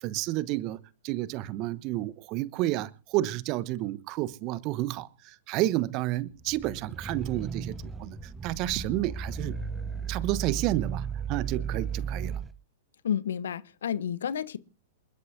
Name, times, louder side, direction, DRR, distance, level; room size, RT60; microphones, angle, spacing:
voice 1, 0.0-9.6 10.1-12.4, right 16 dB, 40° right, 1.0 m, -31 dB
sound 1, 6.4-12.5, right 6 dB, 10° right, 0.9 m, -35 dB
voice 2, 13.0-14.6, left 8 dB, 65° left, 1.0 m, -30 dB
28.0 x 12.0 x 2.7 m
figure-of-eight pair, 105°, 0 cm